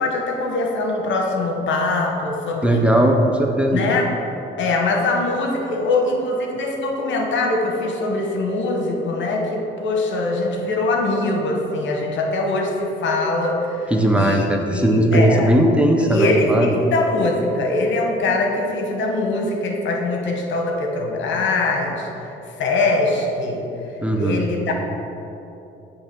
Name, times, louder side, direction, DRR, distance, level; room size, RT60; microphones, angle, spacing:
voice 1, 0.0-2.9 3.7-4.1 4.6-14.5 14.7-15.5 16.0-22.3 22.6-23.7 24.2-24.7, left 2 dB, 70° left, 2 dB, 1.1 m, -22 dB
voice 2, 2.6-3.8 13.9-16.8 24.0-24.4, right 1 dB, 5° right, 1 dB, 0.7 m, -18 dB
7.8 x 3.4 x 5.9 m, 3.0 s
cardioid pair, 90°, 20 cm